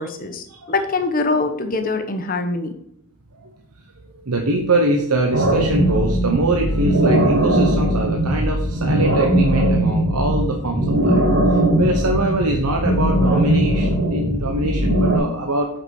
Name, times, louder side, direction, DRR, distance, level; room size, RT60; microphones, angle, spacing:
voice 1, 0.0-2.7, left 3 dB, 40° left, 7 dB, 1.1 m, -23 dB
voice 2, 4.0-15.7, right 2 dB, 90° right, 2 dB, 1.0 m, -23 dB
sound 1, 5.3-15.2, right 1 dB, 60° right, 3.0 m, -19 dB
8.2 x 5.8 x 4.7 m, 0.72 s
head